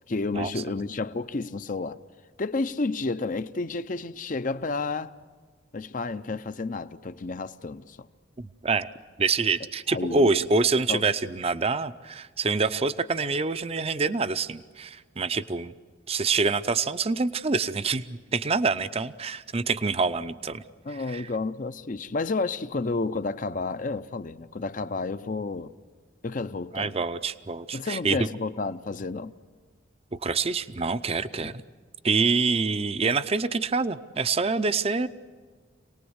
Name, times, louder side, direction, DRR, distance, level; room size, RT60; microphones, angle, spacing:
voice 1, 0.1-2.0 2.4-5.1 5.7-8.1 9.9-10.4 10.9-11.1 20.8-25.7 26.2-26.9 27.7-29.3 31.4-31.5, left 3 dB, 45° left, 0.6 m, -31 dB
voice 2, 8.4-8.9 9.2-15.7 16.1-20.6 21.1-21.3 26.7-28.3 30.2-31.5 32.0-35.1, right 4 dB, 30° right, 0.6 m, -26 dB
27.0 x 19.0 x 8.0 m
head